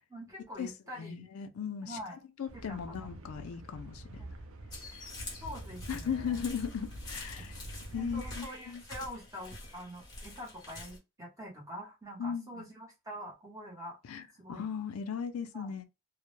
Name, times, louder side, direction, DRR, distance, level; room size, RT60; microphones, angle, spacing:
voice 1, 0.1-1.3 1.8-2.2 2.5-3.1 4.2-4.3 5.4-6.4 7.4-7.5 7.9-14.0 14.4-14.7 15.5-15.7, equal, 15° right, 0.9 m, -45 dB
voice 2, 1.0-4.3 5.9-7.6 7.9-8.8 12.2-12.7 14.0-15.8, left 7 dB, 90° left, 0.4 m, -37 dB
sound 1, 2.5-8.4, right 1 dB, 80° right, 0.5 m, -46 dB
sound 2, 4.7-11.0, left 2 dB, 20° left, 0.7 m, -47 dB
2.1 x 2.0 x 3.0 m
head